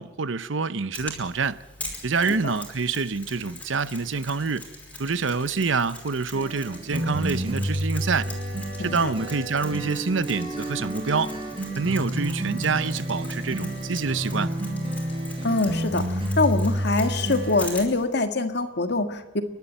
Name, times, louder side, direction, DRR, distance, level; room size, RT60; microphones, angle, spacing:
voice 1, 0.0-1.6 2.0-4.7 5.0-8.3 8.8-11.3 11.8-14.5, right 4 dB, 75° right, 0.8 m, -26 dB
Mechanisms, 0.9-18.0, left 2 dB, 10° left, 5.2 m, -42 dB
sound 1, 6.3-17.7, right 1 dB, 30° right, 5.0 m, -30 dB
voice 2, 8.8-9.1 15.4-19.4, left 3 dB, 60° left, 1.7 m, -24 dB
29.0 x 11.5 x 9.2 m
head